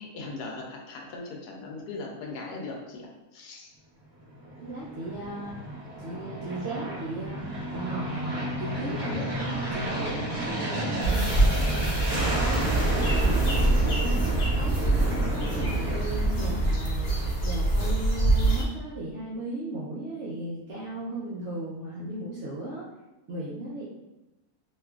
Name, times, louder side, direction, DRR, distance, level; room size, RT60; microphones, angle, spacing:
voice 1, 0.0-3.7, left 3 dB, 75° left, 0 dB, 1.1 m, -39 dB
Aircraft, 4.3-17.0, right 1 dB, 20° right, 0.8 m, -31 dB
voice 2, 4.6-5.5 6.0-12.8 13.2-17.1 17.4-22.8 23.3-23.8, right 2 dB, 75° right, -6 dB, 0.6 m, -36 dB
sound 1, 11.0-18.6, right 2 dB, 50° left, 0.6 m, -25 dB
2.9 x 2.4 x 2.3 m, 1.0 s
omnidirectional pair, 1.7 m